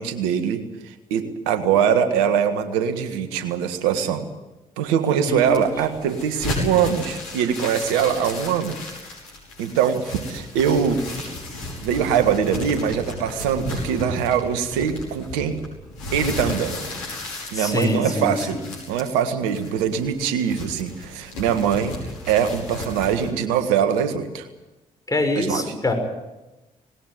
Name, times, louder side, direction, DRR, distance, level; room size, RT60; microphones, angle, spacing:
voice 1, 0.0-4.2 4.8-8.8 9.6-11.0 11.8-15.6 16.1-16.8 17.5-18.6 18.9-21.9 22.3-24.5 25.3-25.6, right 8 dB, 80° right, 10 dB, 1.7 m, -22 dB
voice 2, 5.3-5.7 17.5-18.7 25.1-25.9, left 2 dB, 20° left, 4 dB, 6.3 m, -24 dB
sound 1, 5.4-23.3, left 1 dB, 85° left, 5.3 m, -34 dB
19.5 x 19.0 x 9.2 m, 1.0 s
hypercardioid pair, 45°, 17 cm